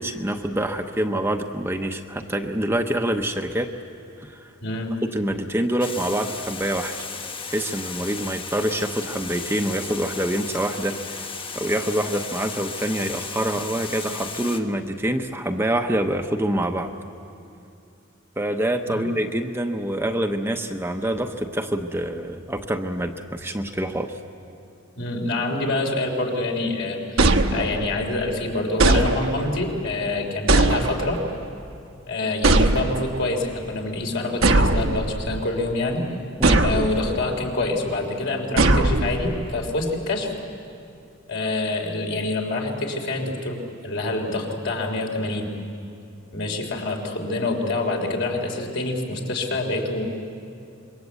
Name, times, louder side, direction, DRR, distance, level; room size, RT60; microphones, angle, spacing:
voice 1, 0.0-3.7 4.2-4.5 5.1-6.9 7.5-11.3 11.5-16.9 18.4-24.2 36.4-36.6, right 1 dB, 10° right, 5 dB, 0.8 m, -26 dB
voice 2, 4.6-4.9 18.9-19.1 25.0-31.2 32.1-36.1 36.6-40.3 41.3-43.6 43.8-45.5 46.3-50.1, left 2 dB, 60° left, 2 dB, 3.6 m, -26 dB
Water, 5.8-14.6, left 5 dB, 25° left, 1.1 m, -35 dB
Laser Shots, 27.2-28.1 28.8-29.6 30.5-31.3 32.4-33.2 34.4-35.4 36.4-37.2 38.6-39.5, right 2 dB, 80° right, 1.2 m, -20 dB
26.5 x 22.0 x 8.3 m, 2.6 s
head